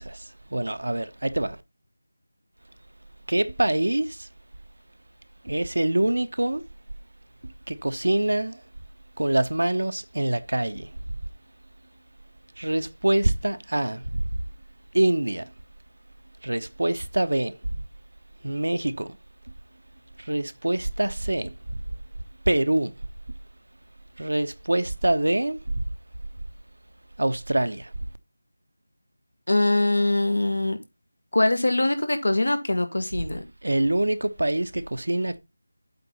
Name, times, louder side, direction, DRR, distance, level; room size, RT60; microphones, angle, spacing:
voice 1, 0.0-1.6 3.3-4.3 5.4-6.6 7.4-8.6 9.2-10.9 12.6-14.3 14.9-15.5 16.4-17.6 18.4-19.2 20.2-21.5 22.5-22.9 24.2-25.7 27.2-27.9 33.6-35.4, right 1 dB, 85° right, 1.0 m, -25 dB
voice 2, 29.5-30.8 31.3-33.4, left 2 dB, 85° left, 1.8 m, -23 dB
8.1 x 3.9 x 5.6 m
figure-of-eight pair, 170°, 0 cm